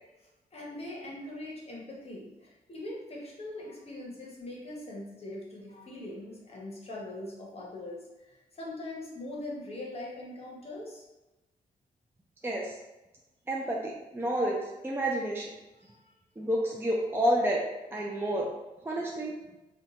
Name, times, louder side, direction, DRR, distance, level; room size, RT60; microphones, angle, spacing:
voice 1, 0.5-8.0 8.3-11.0, left 1 dB, 40° left, -4 dB, 1.0 m, -41 dB
voice 2, 12.4-12.8 13.5-15.5 16.4-17.6 17.9-18.5 18.8-19.3, right 1 dB, 15° right, -3 dB, 0.5 m, -29 dB
2.7 x 2.3 x 3.9 m, 1.0 s
cardioid pair, 75°, 16 cm